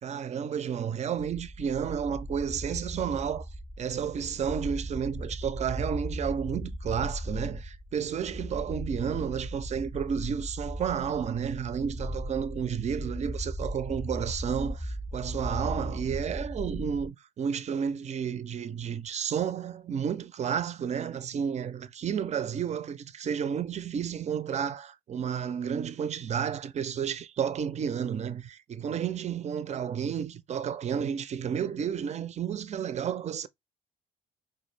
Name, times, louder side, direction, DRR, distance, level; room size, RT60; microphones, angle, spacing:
voice 1, 0.0-3.5 3.8-33.5, right 8 dB, 40° right, 0.5 m, -31 dB
sound 1, 1.2-17.1, equal, 10° left, 0.7 m, -37 dB
4.3 x 2.1 x 3.3 m
supercardioid pair, 85°, 19 cm